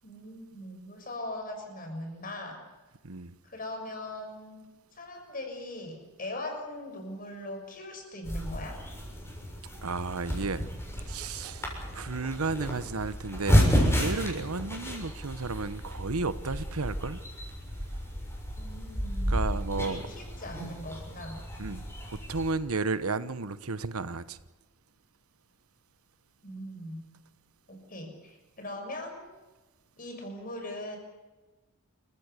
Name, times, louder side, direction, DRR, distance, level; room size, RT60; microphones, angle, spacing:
voice 1, 0.0-2.6 3.4-4.7 4.9-8.8 18.6-19.3 19.7-21.4 26.4-27.0 27.7-29.3 30.0-31.0, left 1 dB, 40° left, 6.6 m, -40 dB
sound 1, 8.2-22.5, equal, 10° left, 7.0 m, -31 dB
voice 2, 9.8-10.6 11.1-17.2 19.3-20.0 21.6-24.4, right 3 dB, 85° right, 1.1 m, -33 dB
29.5 x 15.5 x 8.4 m
head